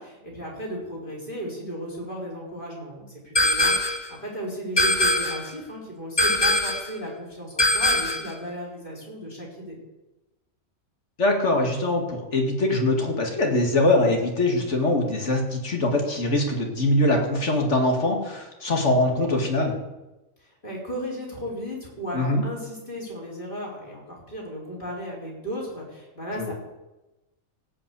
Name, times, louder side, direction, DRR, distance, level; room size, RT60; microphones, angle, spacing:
voice 1, 0.0-9.8 20.4-26.5, equal, 35° left, -4 dB, 4.6 m, -35 dB
sound 1, 3.4-4.1 4.8-5.5 6.2-6.9 7.6-8.3, left 1 dB, 20° left, 1.2 m, -22 dB
voice 2, 11.2-19.7 22.1-22.4 26.3-26.5, left 1 dB, 55° left, 2 dB, 2.4 m, -23 dB
17.0 x 5.7 x 8.3 m, 1.0 s
omnidirectional pair, 1.5 m